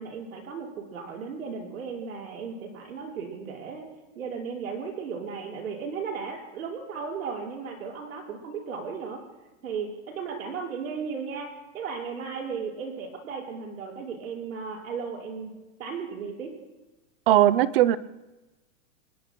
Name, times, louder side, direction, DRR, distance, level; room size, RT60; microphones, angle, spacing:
voice 1, 0.0-3.9 4.2-9.2 9.6-15.5 15.8-16.5, right 5 dB, 85° right, -2 dB, 5.7 m, -35 dB
voice 2, 17.3-18.0, right 13 dB, 45° right, 17 dB, 0.6 m, -19 dB
26.5 x 21.0 x 2.3 m, 1.1 s
supercardioid pair, 160°, 40 cm